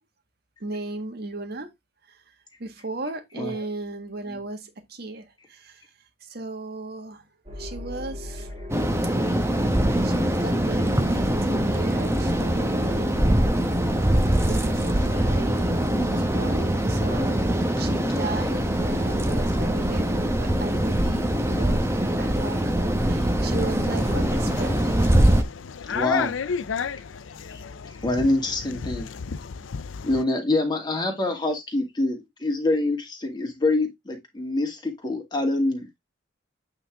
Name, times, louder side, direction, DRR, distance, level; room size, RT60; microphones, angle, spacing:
voice 1, 0.6-1.7 2.1-2.2 2.6-5.8 6.2-7.3 7.6-8.5 10.0-13.6 14.5-24.9, right 2 dB, 55° right, 1.6 m, -36 dB
sound 1, 7.4-20.3, equal, 30° right, 1.8 m, -39 dB
sound 2, 8.7-25.4, right 1 dB, 15° right, 1.0 m, -23 dB
sound 3, 23.9-30.2, left 6 dB, 80° left, 0.5 m, -33 dB
voice 2, 25.9-26.3 27.5-27.6 28.0-29.1 30.0-35.9, left 2 dB, 20° left, 2.2 m, -25 dB
8.7 x 3.9 x 3.5 m
head